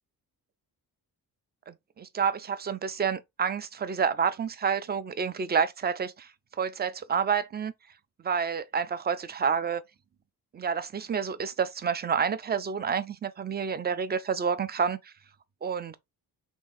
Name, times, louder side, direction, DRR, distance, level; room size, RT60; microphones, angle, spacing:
voice 1, 1.7-6.3 6.6-7.7 8.2-9.8 10.5-15.1 15.6-16.0, right 6 dB, 25° right, 0.4 m, -29 dB
3.6 x 3.1 x 4.1 m
wide cardioid pair, 160°, 39 cm